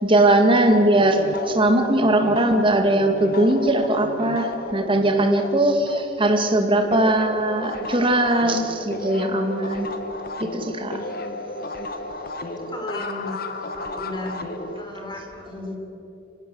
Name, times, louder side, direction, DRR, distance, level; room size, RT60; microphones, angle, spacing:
voice 1, 0.0-9.9 10.4-11.0, right 1 dB, 30° right, 5 dB, 2.1 m, -20 dB
sound 1, 0.7-6.6 6.9-14.9, left 2 dB, 55° left, 1.5 m, -33 dB
voice 2, 12.7-13.4 13.7-14.5 14.8-15.8, left 1 dB, 25° left, 2 dB, 3.8 m, -34 dB
25.5 x 17.0 x 7.2 m, 3.0 s
head